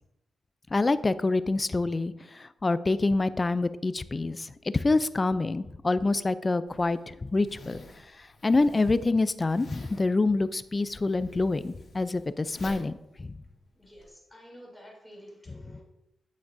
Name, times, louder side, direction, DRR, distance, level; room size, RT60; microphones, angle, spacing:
voice 1, 0.7-7.8 8.4-13.3, left 3 dB, 25° left, 14 dB, 0.4 m, -26 dB
Zipper (clothing), 6.7-14.1, left 2 dB, 50° left, 2.5 m, -49 dB
voice 2, 13.7-15.8, equal, 5° left, -3 dB, 3.1 m, -50 dB
9.5 x 8.3 x 2.6 m, 0.86 s
cardioid pair, 110°, 0 cm